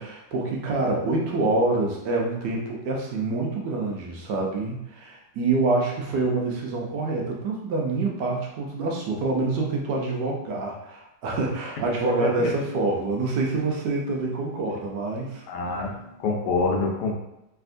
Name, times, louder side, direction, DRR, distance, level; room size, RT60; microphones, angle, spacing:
voice 1, 0.0-15.4, right 3 dB, 75° right, -1 dB, 1.2 m, -26 dB
voice 2, 12.2-12.5 15.5-17.1, left 3 dB, 75° left, 0 dB, 1.1 m, -26 dB
3.4 x 2.7 x 2.5 m, 0.89 s
omnidirectional pair, 2.0 m